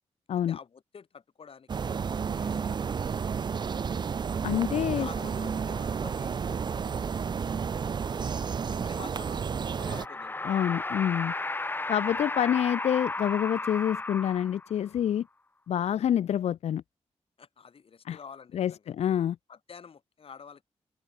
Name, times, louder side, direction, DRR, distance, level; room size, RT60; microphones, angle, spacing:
voice 1, 0.5-3.4 4.9-8.4 8.7-10.5 12.4-12.5 15.8-16.0 17.4-18.8 19.5-20.6, left 6 dB, 55° left, 7.5 m, -49 dB
sound 1, 1.7-10.1, right 6 dB, 40° right, 0.5 m, -31 dB
voice 2, 4.4-5.1 10.4-11.3 11.9-15.3 15.7-16.8 18.1-18.2 18.5-19.4, left 10 dB, 70° left, 0.4 m, -27 dB
sound 2, 9.8-14.9, left 2 dB, 20° left, 0.7 m, -34 dB
wide cardioid pair, 115°, 11 cm